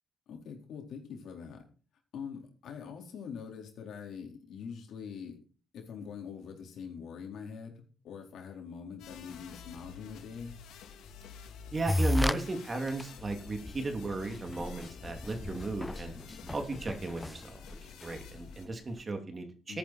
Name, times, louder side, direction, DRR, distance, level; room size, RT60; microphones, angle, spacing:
voice 1, 0.3-1.6 2.1-5.4 5.7-10.5 19.7-19.8, left 6 dB, 70° left, 2 dB, 4.1 m, -44 dB
sound 1, 9.0-18.7, left 6 dB, 90° left, 2.7 m, -49 dB
voice 2, 11.7-16.1 16.5-19.8, right 3 dB, 30° right, 5 dB, 2.8 m, -35 dB
sound 2, 11.9-12.4 12.9-13.0 13.7-13.8 14.1-14.2 14.4-18.1, left 1 dB, 10° left, 0.5 m, -33 dB
13.5 x 10.0 x 4.4 m, 0.39 s
cardioid pair, 90°, 0 cm